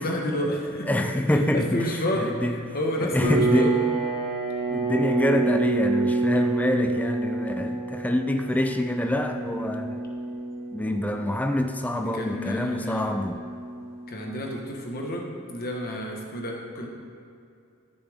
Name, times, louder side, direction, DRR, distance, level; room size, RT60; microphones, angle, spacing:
voice 1, 0.0-1.0 1.3-3.8 12.0-13.1 14.1-16.9, equal, 45° left, 0 dB, 1.3 m, -30 dB
voice 2, 0.8-2.6 3.0-3.8 4.7-10.0 10.7-13.4, left 1 dB, 5° left, 6 dB, 0.4 m, -26 dB
sound 1, 3.2-14.3, right 3 dB, 30° right, 1.8 m, -28 dB
13.0 x 6.8 x 3.6 m, 2.5 s
head